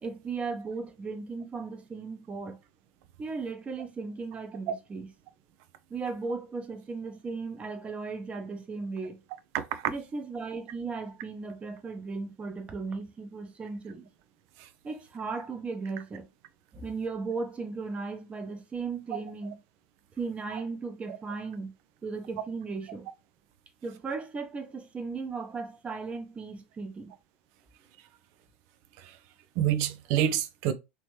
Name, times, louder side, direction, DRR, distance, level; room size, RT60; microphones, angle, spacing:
voice 1, 0.0-2.6 3.2-5.1 5.9-9.2 9.9-14.1 14.8-16.3 16.7-19.6 20.2-21.7 22.0-23.1 23.8-27.1, right 4 dB, 20° right, 0.9 m, -36 dB
voice 2, 29.6-30.7, right 10 dB, 50° right, 0.5 m, -28 dB
3.1 x 3.0 x 3.2 m
figure-of-eight pair, 85°, 6 cm